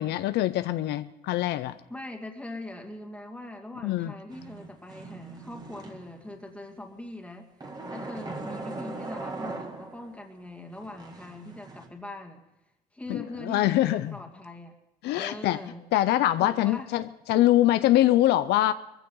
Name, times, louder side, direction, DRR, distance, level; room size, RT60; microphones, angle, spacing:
voice 1, 0.0-1.8 3.8-4.1 13.1-14.1 15.0-15.6 15.9-18.7, left 14 dB, 80° left, 0.6 m, -24 dB
voice 2, 1.9-7.5 7.9-12.4 12.9-14.7 15.1-15.8 16.4-16.9, left 1 dB, 5° left, 2.1 m, -41 dB
sound 1, 4.3-6.4 7.6-10.2 10.8-11.9, right 3 dB, 25° right, 2.0 m, -40 dB
22.0 x 15.0 x 3.9 m
cardioid pair, 110°, 17 cm